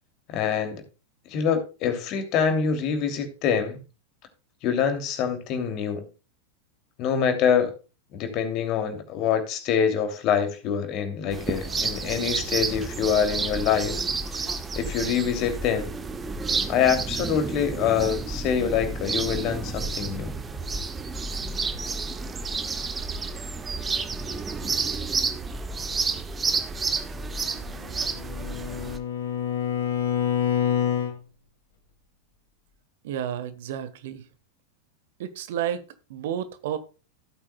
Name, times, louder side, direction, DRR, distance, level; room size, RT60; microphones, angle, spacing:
voice 1, 0.3-0.8 1.3-3.8 4.6-6.1 7.0-7.7 8.1-14.0 14.3-14.4 14.8-15.9 16.7-20.3, left 7 dB, 40° left, 2.8 m, -25 dB
An English Country Garden in July, 11.3-29.0, right 4 dB, 15° right, 1.3 m, -30 dB
Bowed string instrument, 27.8-31.2, left 8 dB, 60° left, 2.2 m, -27 dB
voice 2, 33.0-34.2 35.2-35.8 36.1-36.8, right 10 dB, 55° right, 1.3 m, -31 dB
15.5 x 8.8 x 2.3 m
figure-of-eight pair, 90°, 0 cm